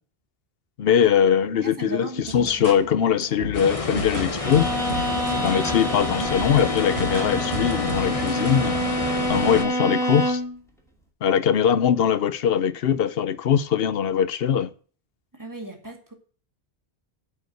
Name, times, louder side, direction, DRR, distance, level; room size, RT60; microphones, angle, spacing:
voice 1, 0.8-4.7 5.3-8.8 9.3-10.4 11.2-14.7, left 8 dB, 65° left, 0.9 m, -21 dB
voice 2, 1.5-2.7 15.4-16.1, right 1 dB, 20° right, 2.2 m, -36 dB
sound 1, 2.2-8.5, right 1 dB, 80° right, 2.1 m, -35 dB
sound 2, 3.5-9.6, left 3 dB, 35° left, 1.2 m, -29 dB
Bowed string instrument, 4.4-10.6, equal, 5° left, 2.5 m, -27 dB
9.2 x 5.3 x 7.8 m
omnidirectional pair, 1.1 m